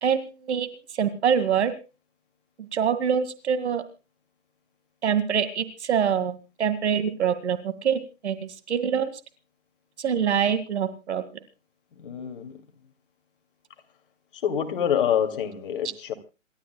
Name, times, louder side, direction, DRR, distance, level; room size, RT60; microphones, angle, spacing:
voice 1, 0.0-0.7 0.9-1.7 2.7-3.8 5.0-9.1 10.0-11.2, right 8 dB, 60° right, 11 dB, 2.2 m, -25 dB
voice 2, 12.0-12.5 14.3-16.1, left 9 dB, 45° left, 7 dB, 2.6 m, -26 dB
27.5 x 13.0 x 2.3 m, 0.31 s
hypercardioid pair, 145°, 38 cm